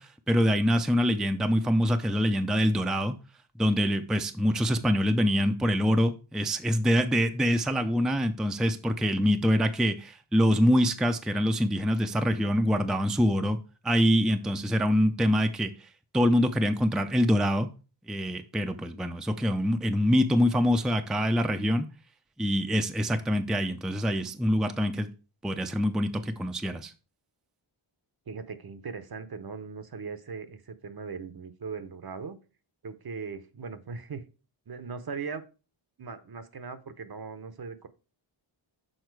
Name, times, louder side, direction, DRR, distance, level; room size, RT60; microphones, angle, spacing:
voice 1, 0.0-3.1 3.6-13.6 13.8-15.7 16.1-17.7 18.1-21.9 22.4-25.1 25.4-26.9, equal, ahead, 7 dB, 0.5 m, -25 dB
voice 2, 28.3-32.4 32.8-34.2 34.7-35.4 36.0-37.9, right 5 dB, 50° right, 11 dB, 0.8 m, -39 dB
6.6 x 4.2 x 4.6 m, 0.34 s
wide cardioid pair, 85°, 49 cm